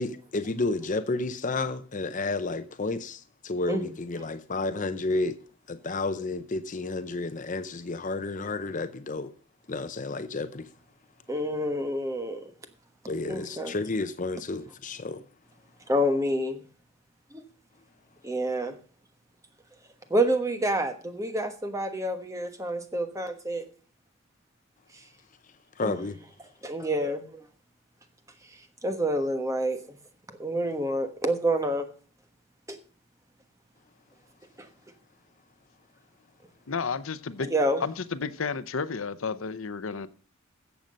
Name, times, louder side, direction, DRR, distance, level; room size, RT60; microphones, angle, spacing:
voice 1, 0.0-5.3 5.7-9.3 9.7-10.7 13.1-15.2 25.8-26.2, left 3 dB, 40° left, 0.7 m, -31 dB
voice 2, 11.3-12.5 13.3-13.8 15.9-16.6 17.3-17.4 18.2-18.8 20.1-23.6 25.8-26.0 26.7-27.2 28.8-29.8 30.4-31.9 32.7-32.8 34.6-34.7 37.4-37.8, right 1 dB, 15° right, 1.3 m, -28 dB
voice 3, 36.7-37.5 37.8-40.1, left 5 dB, 70° left, 0.7 m, -32 dB
14.0 x 7.6 x 5.3 m
head